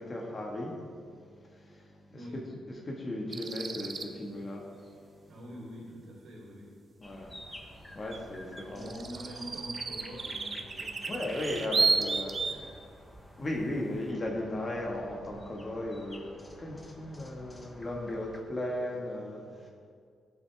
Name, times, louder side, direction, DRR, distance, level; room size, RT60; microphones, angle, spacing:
voice 1, 0.0-2.2 2.8-5.3 7.0-9.1 11.0-12.6 13.3-19.7, left 1 dB, 30° left, -1 dB, 1.6 m, -37 dB
sound 1, 3.3-4.1 8.1-8.2 8.6-12.6, right 4 dB, 40° right, 0.7 m, -32 dB
voice 2, 5.3-6.8 8.7-11.6 12.3-12.8, equal, 80° right, -4 dB, 3.0 m, -45 dB
sound 2, 7.0-18.4, left 1 dB, 10° left, 1.1 m, -50 dB
15.5 x 7.5 x 3.5 m, 2.2 s
cardioid pair, 110°, 0 cm